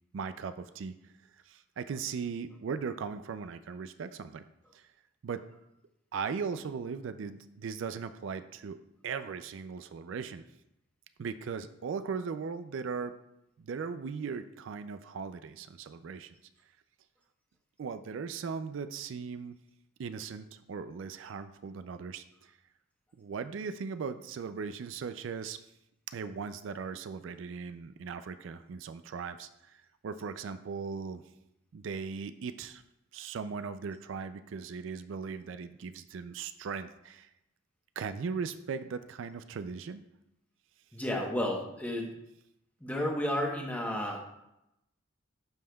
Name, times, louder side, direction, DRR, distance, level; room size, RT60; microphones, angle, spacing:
voice 1, 0.1-1.0 1.5-4.4 4.7-4.9 5.2-5.4 6.1-8.8 9.0-10.4 11.2-13.1 13.6-16.3 17.8-19.5 20.0-22.5 23.2-25.6 26.1-31.2 31.7-32.8 33.1-37.3 38.0-40.0, right 5 dB, 70° right, 11 dB, 0.4 m, -38 dB
voice 2, 40.9-42.1 42.8-44.2, left 1 dB, 10° left, 0 dB, 1.0 m, -32 dB
11.5 x 5.5 x 2.3 m, 0.85 s
head